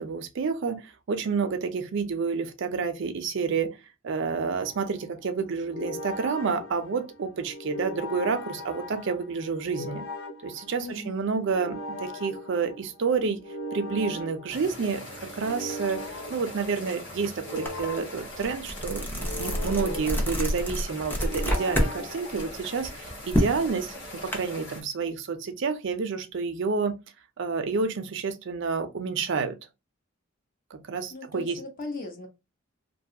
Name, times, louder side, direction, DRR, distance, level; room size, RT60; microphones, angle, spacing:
voice 1, 0.0-3.8 4.0-10.1 10.4-13.4 13.7-15.0 15.4-16.0 16.3-27.0 27.4-29.6 30.7-31.6, right 5 dB, 60° right, 0.5 m, -29 dB
sound 1, 4.6-22.9, left 1 dB, 80° left, 0.5 m, -40 dB
voice 2, 10.8-11.4 31.1-32.3, left 2 dB, 45° left, 0.8 m, -38 dB
sound 2, 14.5-24.8, left 1 dB, 60° left, 1.1 m, -42 dB
sound 3, 17.7-17.8 18.2-21.9 22.3-24.4, equal, 10° left, 0.5 m, -28 dB
2.6 x 2.3 x 2.7 m
head